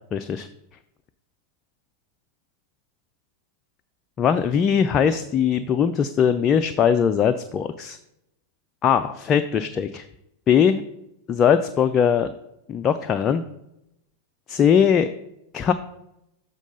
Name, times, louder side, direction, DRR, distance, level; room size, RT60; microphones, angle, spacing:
voice 1, 0.1-0.5 4.2-8.0 8.8-10.1 10.5-10.8 11.3-12.3 12.7-13.4 14.5-15.1 15.5-15.7, left 7 dB, 30° left, 9 dB, 0.3 m, -20 dB
7.2 x 3.7 x 5.3 m, 0.83 s
figure-of-eight pair, 90°, 0 cm